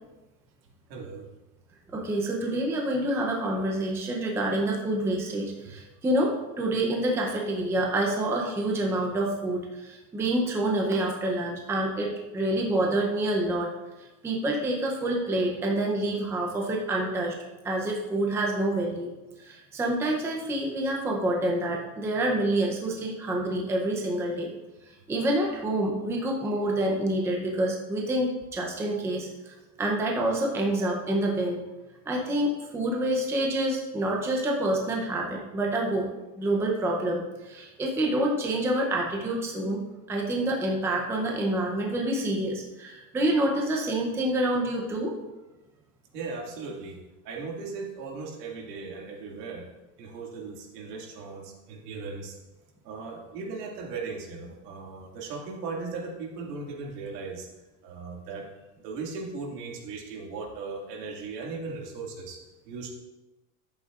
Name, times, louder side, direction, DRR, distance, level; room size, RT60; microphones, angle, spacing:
voice 1, 0.9-1.3 46.1-49.7 50.0-52.4 52.8-57.5 57.8-58.5 58.8-62.4 62.7-62.9, right 4 dB, 85° right, 0 dB, 2.2 m, -37 dB
voice 2, 1.9-13.7 14.2-17.3 17.6-19.1 19.4-24.5 25.1-31.6 32.1-36.1 36.4-39.8 40.1-45.1, right 1 dB, 5° right, -1 dB, 0.6 m, -27 dB
10.5 x 8.3 x 2.4 m, 1.1 s
supercardioid pair, 165°, 47 cm